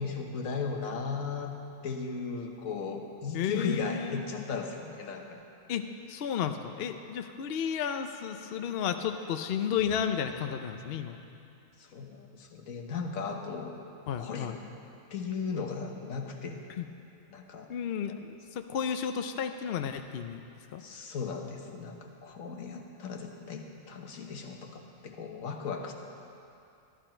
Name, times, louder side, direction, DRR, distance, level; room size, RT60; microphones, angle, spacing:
voice 1, 0.0-1.5 1.8-5.4 11.8-13.7 14.2-14.5 15.1-16.6 17.3-17.7 20.8-25.9, left 5 dB, 80° left, 3 dB, 1.4 m, -36 dB
voice 2, 3.3-4.3 5.7-11.2 14.1-14.6 16.7-16.9 17.7-20.4 20.7-20.8, left 8 dB, 60° left, 7 dB, 0.7 m, -33 dB
13.0 x 12.5 x 4.4 m, 2.6 s
omnidirectional pair, 1.4 m